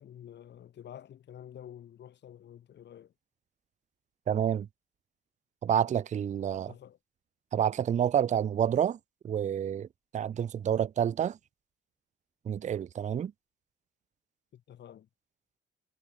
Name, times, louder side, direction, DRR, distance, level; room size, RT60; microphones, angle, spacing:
voice 1, 0.0-3.1 6.7-7.0 14.5-15.1, left 10 dB, 60° left, 1.4 m, -49 dB
voice 2, 4.3-4.7 5.6-6.7 7.5-9.0 9.2-9.9 10.1-11.4 12.5-13.3, right 9 dB, 35° right, 0.5 m, -28 dB
cardioid pair, 90°, 20 cm